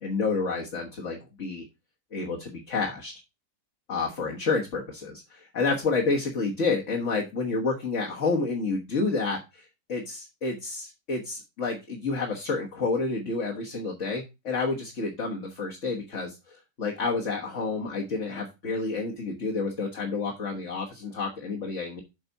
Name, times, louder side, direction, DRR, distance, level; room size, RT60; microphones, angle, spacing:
voice 1, 0.0-1.6 2.1-3.1 3.9-22.0, left 4 dB, 45° left, -1 dB, 1.6 m, -29 dB
8.2 x 5.1 x 4.0 m, 0.25 s
omnidirectional pair, 1.9 m